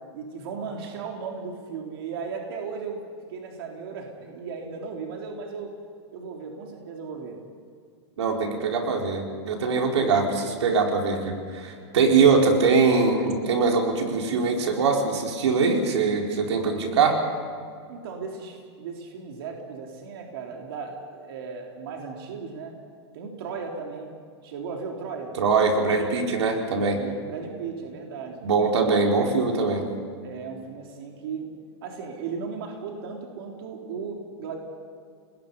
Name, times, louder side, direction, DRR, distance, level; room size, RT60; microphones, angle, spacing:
voice 1, 0.1-3.0 3.3-5.7 6.1-7.4 17.9-22.7 23.1-24.1 24.4-25.4 26.9-28.5 30.2-31.5 31.8-34.6, right 5 dB, 60° right, 1 dB, 3.6 m, -36 dB
voice 2, 8.2-17.2 25.4-27.0 28.4-29.9, right 4 dB, 90° right, 1 dB, 4.2 m, -22 dB
30.0 x 20.0 x 5.5 m, 2.2 s
supercardioid pair, 160°, 14 cm